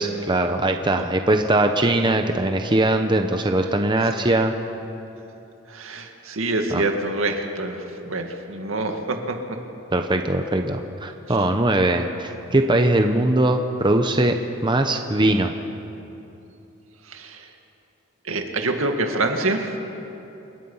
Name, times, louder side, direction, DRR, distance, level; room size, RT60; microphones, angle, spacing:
voice 1, 0.0-4.5 6.7-6.8 9.9-14.4 14.6-15.5, right 1 dB, 25° right, 5 dB, 0.9 m, -21 dB
voice 2, 5.7-7.8 8.0-9.4 17.1-17.5 18.2-19.8, right 2 dB, 75° right, 4 dB, 2.2 m, -26 dB
27.5 x 21.5 x 5.7 m, 2.8 s
head